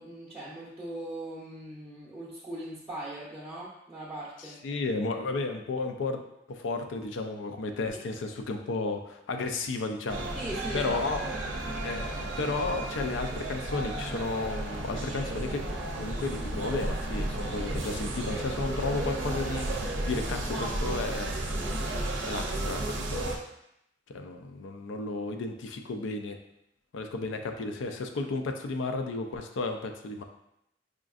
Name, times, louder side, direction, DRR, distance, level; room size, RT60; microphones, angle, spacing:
voice 1, 0.0-4.6 10.4-11.3 20.4-21.0 21.5-21.8, right 1 dB, 10° right, -9 dB, 0.5 m, -39 dB
voice 2, 4.4-6.2 6.5-10.3 10.7-11.2 11.8-15.6 15.9-21.3 22.2-22.8 23.1-23.3 24.1-26.4 26.9-30.2, left 3 dB, 90° left, 5 dB, 0.4 m, -33 dB
sound 1, 10.1-23.4, right 1 dB, 90° right, 0.5 m, -33 dB
4.9 x 2.5 x 2.4 m, 0.82 s
head